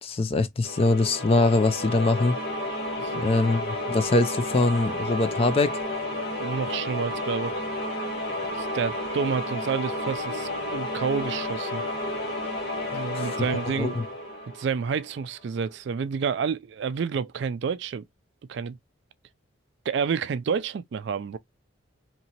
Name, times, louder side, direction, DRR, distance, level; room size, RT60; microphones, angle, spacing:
voice 1, 0.0-2.4 3.1-5.8 13.1-13.4 13.8-14.0, left 2 dB, 30° left, 0.3 m, -23 dB
sound 1, 0.6-15.2, left 1 dB, 50° left, 1.4 m, -31 dB
voice 2, 3.0-3.4 6.4-7.5 8.5-11.8 12.9-14.1 14.5-18.0 18.5-18.8 19.9-21.4, right 6 dB, 60° right, 0.3 m, -29 dB
2.9 x 2.7 x 2.8 m
head